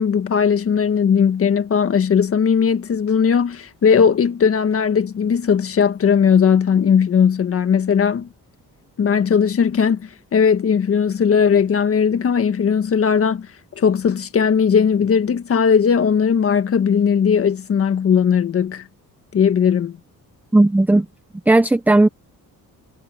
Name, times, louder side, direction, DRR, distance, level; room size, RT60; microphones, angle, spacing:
voice 1, 0.0-8.3 9.0-13.5 13.7-18.9 19.3-20.0, left 7 dB, 40° left, 1.6 m, -18 dB
voice 2, 20.5-21.1 21.5-22.1, right 2 dB, 5° right, 0.5 m, -14 dB
cardioid pair, 170°, 34 cm